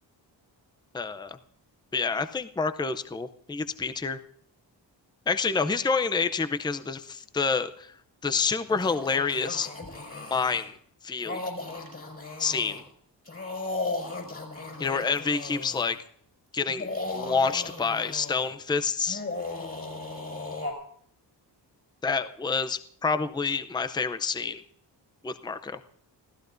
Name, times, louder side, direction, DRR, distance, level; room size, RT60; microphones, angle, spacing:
voice 1, 0.9-1.4 1.9-4.2 5.3-7.9 8.2-9.7 10.3-10.8 11.0-11.4 12.4-12.8 14.8-16.0 16.5-16.9 17.1-19.2 22.0-24.6 25.2-25.8, left 5 dB, 10° left, 10 dB, 0.5 m, -28 dB
sound 1, 8.7-10.7 11.2-12.8 13.3-16.0 16.7-18.5 19.1-20.7, left 2 dB, 30° left, 5.5 m, -36 dB
26.5 x 16.0 x 2.6 m, 0.62 s
wide cardioid pair, 155°, 44 cm